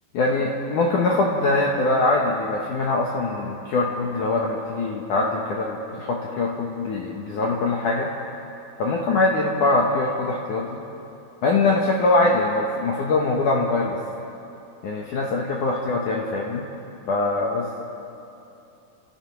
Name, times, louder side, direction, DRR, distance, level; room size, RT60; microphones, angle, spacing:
voice 1, 0.1-8.1 8.8-10.8 11.4-14.0 14.8-16.6 17.1-17.7, left 2 dB, 70° left, -1 dB, 2.0 m, -23 dB
29.5 x 15.0 x 5.9 m, 2.8 s
omnidirectional pair, 5.3 m